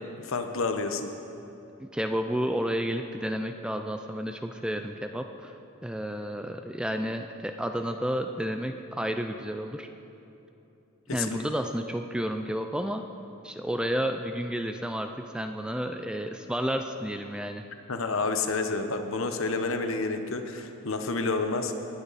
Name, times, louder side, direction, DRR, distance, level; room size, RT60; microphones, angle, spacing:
voice 1, 0.2-1.1 11.1-11.4 17.9-21.7, left 3 dB, 70° left, 6 dB, 1.0 m, -29 dB
voice 2, 1.8-5.5 5.8-9.9 11.1-13.0 13.4-17.7, equal, 5° right, 6 dB, 0.4 m, -31 dB
19.5 x 11.5 x 4.1 m, 2.9 s
head